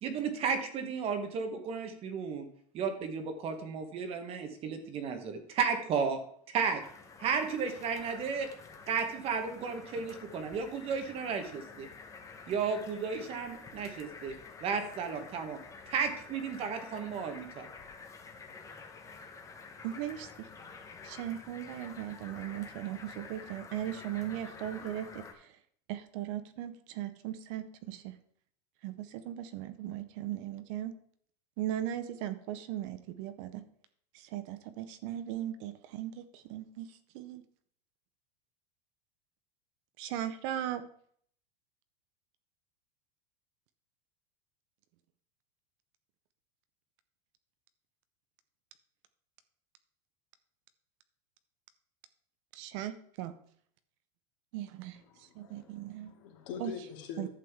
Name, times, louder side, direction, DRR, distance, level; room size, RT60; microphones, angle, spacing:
voice 1, 0.0-2.5 2.7-6.2 6.5-6.8 7.2-8.5 8.9-11.9 12.5-14.3 14.6-15.6 15.9-17.7, right 6 dB, 30° right, 1.0 m, -33 dB
sound 1, 6.8-25.3, left 4 dB, 15° left, 0.9 m, -49 dB
voice 2, 19.8-20.5 21.0-25.6 25.9-28.2 28.8-30.9 31.6-33.6 34.1-37.4 40.0-40.9 52.5-53.3 54.5-56.1 56.6-56.7 57.2-57.3, right 12 dB, 50° right, 0.7 m, -38 dB
voice 3, 55.4-57.3, left 7 dB, 55° left, 2.4 m, -43 dB
11.0 x 7.5 x 3.5 m
supercardioid pair, 160°, 21 cm